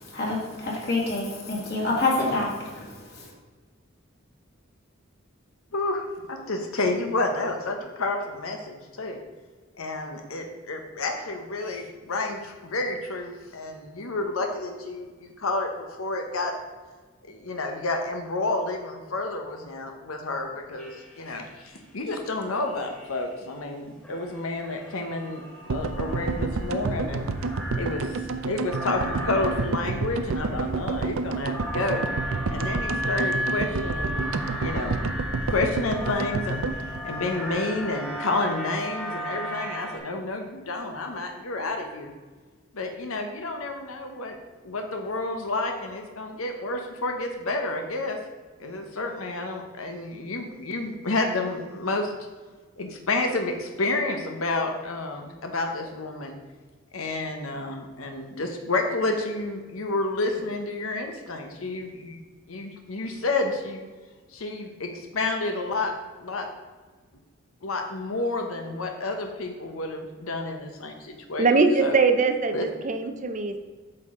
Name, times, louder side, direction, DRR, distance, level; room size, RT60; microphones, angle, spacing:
voice 1, 0.1-2.8, left 2 dB, 55° left, -3 dB, 2.5 m, -26 dB
voice 2, 5.7-9.2 9.8-16.5 17.3-27.2 27.8-32.0 32.5-34.3 34.6-35.0 35.5-42.1 42.7-44.4 44.6-48.2 48.6-52.1 52.8-56.4 56.9-62.2 62.5-63.8 64.3-65.9 66.2-66.5 67.6-71.5 71.8-72.0 72.5-72.6, left 2 dB, 85° left, 4 dB, 0.9 m, -30 dB
sound 1, 20.8-21.6 22.6-23.3 24.0-40.0, equal, 5° left, 1.6 m, -35 dB
sound 2, 25.7-37.9 38.2-38.3 38.4-38.5, right 3 dB, 85° right, 0.5 m, -29 dB
voice 3, 71.4-73.6, right 4 dB, 35° right, 7 dB, 0.6 m, -22 dB
8.9 x 6.4 x 3.7 m, 1.4 s
head